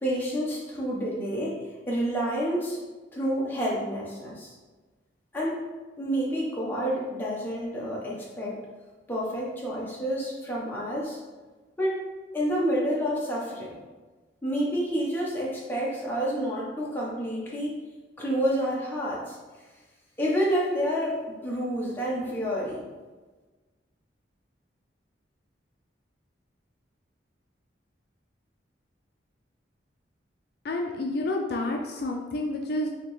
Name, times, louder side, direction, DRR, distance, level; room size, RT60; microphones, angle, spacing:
voice 1, 0.0-1.6 1.9-2.8 3.1-4.5 5.3-5.6 6.0-8.6 9.1-11.2 11.8-12.0 12.3-13.7 14.4-17.7 18.2-19.4 20.2-22.8, equal, 10° left, -5 dB, 0.9 m, -29 dB
voice 2, 30.6-32.9, left 2 dB, 55° left, 1 dB, 0.4 m, -29 dB
4.9 x 3.0 x 3.1 m, 1.3 s
head